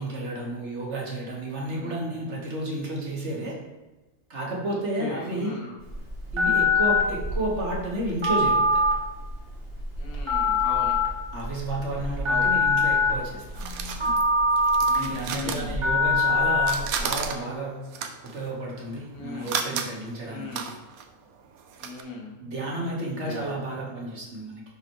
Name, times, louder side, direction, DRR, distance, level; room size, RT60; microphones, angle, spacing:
voice 1, 0.0-3.6 4.3-5.5 6.3-8.8 11.3-14.1 15.0-17.8 18.3-20.6 22.4-24.6, right 1 dB, 50° right, -2 dB, 1.7 m, -32 dB
voice 2, 4.7-5.8 10.0-11.0 12.3-12.5 14.9-15.8 19.1-19.6 20.3-20.7 21.8-22.3 23.2-23.6, left 4 dB, 85° left, -1 dB, 1.5 m, -38 dB
Telephone, 5.8-17.2, left 2 dB, 20° right, 1.4 m, -24 dB
sound 1, 12.9-16.3 16.6-22.0, right 7 dB, 85° right, 1.1 m, -34 dB
11.0 x 4.0 x 3.1 m, 1.1 s
omnidirectional pair, 1.5 m